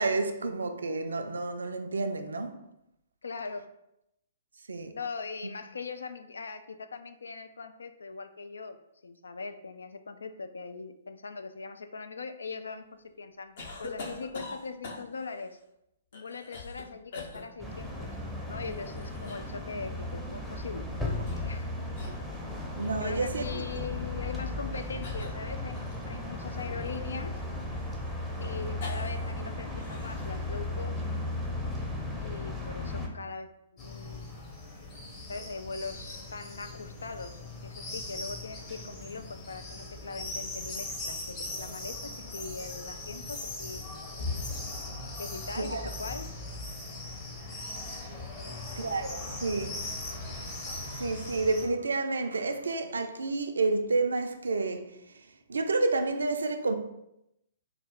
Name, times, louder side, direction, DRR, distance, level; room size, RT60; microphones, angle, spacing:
voice 1, 0.0-2.5 4.7-5.0 22.8-23.8 45.6-45.9 48.8-55.0 55.5-56.7, right 3 dB, 70° right, 0.4 m, -30 dB
voice 2, 3.2-3.7 4.9-8.8 9.0-12.9 13.2-13.5 13.8-15.6 16.1-18.1 18.5-20.9 21.4-21.7 23.0-27.4 28.4-31.0 32.2-34.3 35.3-43.9 45.2-46.3 48.4-48.7, left 4 dB, 70° left, 0.3 m, -41 dB
sound 1, 13.6-15.3 16.1-16.8 17.1-17.4 18.6-19.6 21.0-21.7 21.9-22.2 22.8-23.0 24.1-24.3 25.0-26.2 26.8-29.3 29.6-30.3, left 3 dB, 55° left, 0.8 m, -43 dB
sound 2, 17.6-33.1, left 2 dB, ahead, 0.6 m, -35 dB
sound 3, 33.8-51.7, left 2 dB, 25° left, 0.9 m, -39 dB
4.1 x 2.3 x 3.6 m
figure-of-eight pair, 115°, 0 cm